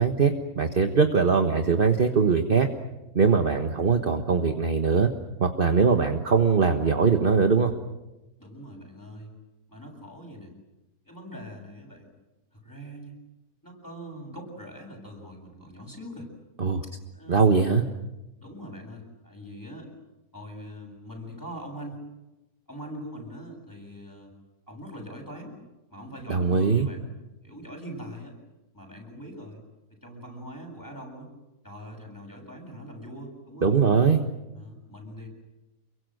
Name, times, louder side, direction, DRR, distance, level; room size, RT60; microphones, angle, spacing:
voice 1, 0.0-2.7 3.1-5.1 5.4-7.7 16.6-16.8 17.3-17.8 26.3-26.9 33.6-34.2, right 5 dB, 40° right, 6 dB, 1.5 m, -21 dB
voice 2, 8.4-9.4 9.7-10.5 11.0-12.1 12.5-13.1 13.6-16.3 16.8-17.5 18.4-19.9 20.3-22.0 22.7-24.3 24.7-25.6 25.9-27.1 27.4-28.4 28.7-29.6 29.9-31.3 31.6-33.8 34.5-35.3, equal, 10° left, 1 dB, 7.9 m, -42 dB
29.0 x 23.5 x 7.9 m, 1.0 s
omnidirectional pair, 1.6 m